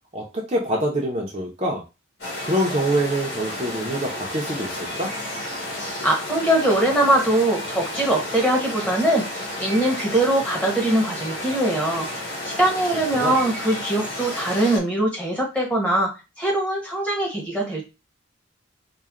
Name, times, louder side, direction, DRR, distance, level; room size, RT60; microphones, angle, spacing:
voice 1, 0.1-1.8 2.4-5.1 13.1-13.4, right 1 dB, 35° right, -1 dB, 0.8 m, -25 dB
sound 1, 2.2-14.8, left 1 dB, 60° left, 1.9 m, -32 dB
voice 2, 6.0-12.1 12.4-16.1 16.4-17.8, right 1 dB, 5° left, -2 dB, 1.5 m, -22 dB
4.4 x 2.4 x 3.7 m, 0.27 s
head